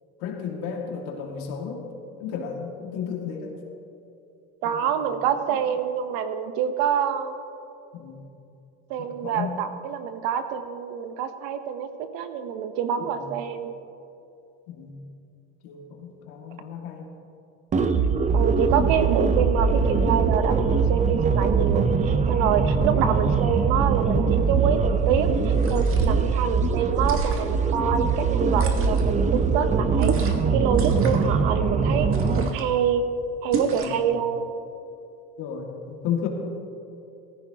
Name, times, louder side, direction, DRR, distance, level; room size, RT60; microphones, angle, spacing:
voice 1, 0.2-1.8 2.2-3.5 4.6-5.1 5.5-5.6 7.9-8.2 9.0-9.5 13.1-13.3 14.7-15.0 15.6-17.1 32.1-32.6 33.7-34.1 35.4-36.3, left 7 dB, 65° left, 1 dB, 2.2 m, -34 dB
voice 2, 4.6-7.3 8.9-13.7 18.3-33.0 33.4-34.5, right 8 dB, 65° right, 9 dB, 1.1 m, -26 dB
sound 1, 17.7-32.5, right 5 dB, 20° right, 0.7 m, -22 dB
sound 2, 25.5-26.2 27.0-27.7 28.5-29.1 30.0-30.5 30.7-31.3 32.1-32.7 33.5-34.0, right 5 dB, 40° right, 1.7 m, -31 dB
16.5 x 14.5 x 2.9 m, 2.7 s
supercardioid pair, 110°, 35 cm